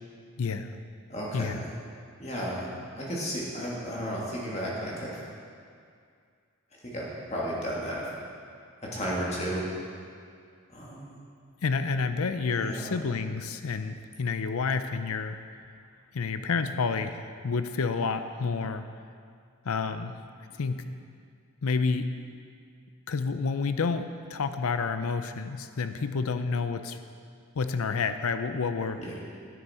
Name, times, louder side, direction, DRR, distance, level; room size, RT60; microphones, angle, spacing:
voice 1, 0.4-0.7 1.3-1.6 11.6-15.4 16.1-18.8 19.6-20.2 20.6-20.8 21.6-22.1 23.1-27.0 27.5-29.0, left 4 dB, 80° left, 10 dB, 0.5 m, -29 dB
voice 2, 1.1-1.7 2.2-2.7 2.9-5.2 6.8-8.1 8.8-9.6 10.7-11.2 12.5-13.0 29.0-29.1, equal, 30° left, -5 dB, 2.0 m, -33 dB
10.0 x 9.6 x 4.3 m, 2.2 s
head